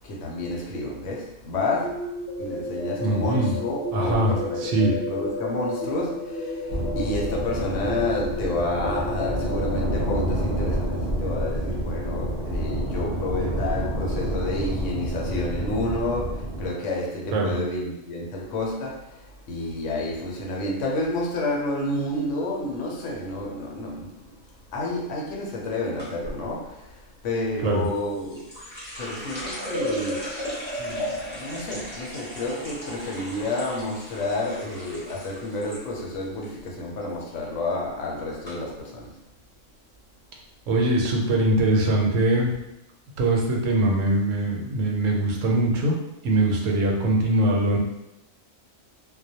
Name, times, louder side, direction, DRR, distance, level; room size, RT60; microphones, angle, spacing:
voice 1, 0.0-24.4 24.7-28.4 29.0-30.3 30.7-39.2, left 2 dB, 70° left, -2 dB, 0.9 m, -30 dB
sound 1, 1.8-13.5, left 1 dB, 45° left, 0.8 m, -33 dB
voice 2, 3.0-3.5 3.9-4.3 4.6-4.9 17.3-17.5 27.6-27.8 40.7-42.5 43.2-46.0 46.2-47.8, right 1 dB, 75° right, 0 dB, 0.9 m, -22 dB
sound 2, 6.7-16.7, right 1 dB, 50° right, 0.4 m, -28 dB
sound 3, 26.0-26.4 27.8-35.8 36.1-36.7 37.0-37.3 38.0-38.1 38.4-38.5, equal, 10° left, 0.7 m, -35 dB
2.3 x 2.1 x 2.7 m, 0.88 s
omnidirectional pair, 1.4 m